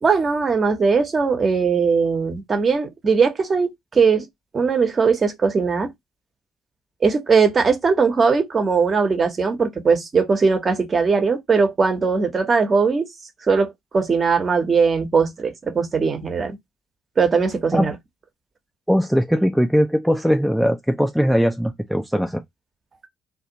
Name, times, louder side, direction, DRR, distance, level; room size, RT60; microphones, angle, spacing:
voice 1, 0.0-4.3 4.5-5.9 7.0-13.0 13.5-16.6 17.2-18.0, right 5 dB, 35° right, 0.8 m, -19 dB
voice 2, 18.9-22.4, equal, ahead, 0.4 m, -20 dB
2.4 x 2.0 x 2.8 m
figure-of-eight pair, 50°, 0 cm